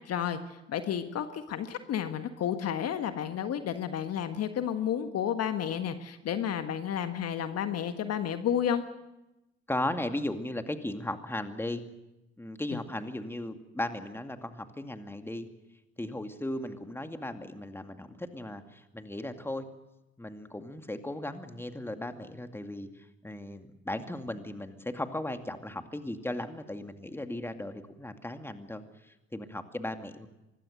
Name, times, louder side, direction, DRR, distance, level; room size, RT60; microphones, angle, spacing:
voice 1, 0.1-8.8, left 9 dB, 45° left, 9 dB, 1.6 m, -31 dB
voice 2, 9.7-11.8 12.4-15.5 16.0-19.7 20.2-30.3, left 1 dB, 5° left, 7 dB, 2.3 m, -36 dB
25.0 x 20.5 x 6.6 m, 0.95 s
figure-of-eight pair, 55°, 33 cm